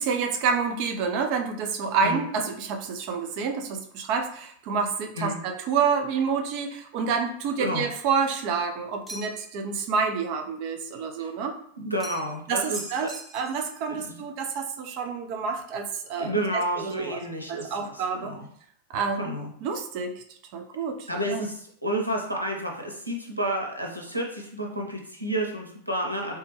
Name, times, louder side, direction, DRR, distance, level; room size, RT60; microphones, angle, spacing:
voice 1, 0.0-11.5 12.5-17.2 17.5-18.3 18.9-19.2 19.6-20.2 20.5-21.4, right 5 dB, 45° right, 4 dB, 0.4 m, -28 dB
sound 1, 9.1-9.6 12.0-12.4 12.7-13.7, right 1 dB, 5° right, 0.7 m, -41 dB
voice 2, 11.8-13.1 13.9-14.2 16.2-18.5 19.2-19.5 21.1-26.4, right 1 dB, 90° left, 1 dB, 0.6 m, -30 dB
3.3 x 2.1 x 3.0 m, 0.64 s
figure-of-eight pair, 90°, 0 cm